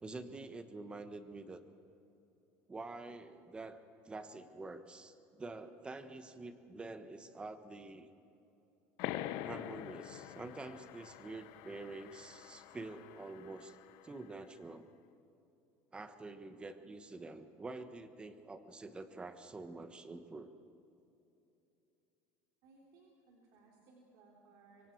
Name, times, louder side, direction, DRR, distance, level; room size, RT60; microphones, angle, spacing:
voice 1, 0.0-1.6 2.7-3.8 4.0-8.1 9.4-13.8 14.0-14.9 15.9-20.5, right 3 dB, 15° right, 9 dB, 1.2 m, -47 dB
sound 1, 9.0-14.2, left 13 dB, 70° left, 0.7 m, -45 dB
voice 2, 22.6-24.9, right 3 dB, 60° right, -2 dB, 3.4 m, -63 dB
25.0 x 24.0 x 4.7 m, 2.9 s
cardioid pair, 145°, 7 cm